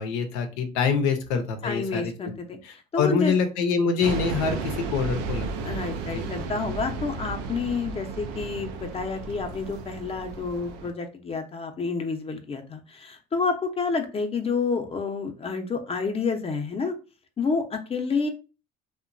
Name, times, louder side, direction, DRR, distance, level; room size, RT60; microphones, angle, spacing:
voice 1, 0.0-2.3 2.6-5.5 6.1-6.2, left 5 dB, 85° left, 6 dB, 0.6 m, -25 dB
voice 2, 1.6-2.6 2.9-3.3 5.7-16.9 17.4-18.3, left 4 dB, 30° left, 6 dB, 0.6 m, -29 dB
sound 1, 4.0-10.9, right 3 dB, 85° right, 0.5 m, -33 dB
2.9 x 2.2 x 2.5 m, 0.33 s
supercardioid pair, 70°, 19 cm